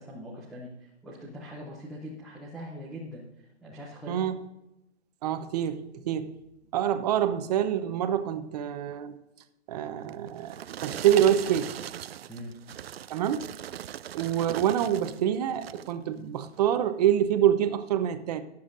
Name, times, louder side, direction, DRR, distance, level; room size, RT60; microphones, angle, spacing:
voice 1, 0.0-4.2 12.3-12.5, equal, ahead, -8 dB, 0.4 m, -42 dB
voice 2, 4.1-4.4 5.2-6.3 6.7-9.2 9.7-10.6 10.8-11.7 13.1-13.5 14.1-18.4, right 10 dB, 35° right, 10 dB, 0.9 m, -26 dB
sound 1, 10.1-15.2 15.5-16.0 16.5-16.7, right 11 dB, 60° right, 0.5 m, -39 dB
20.0 x 7.3 x 2.6 m, 0.93 s
hypercardioid pair, 145°, 35 cm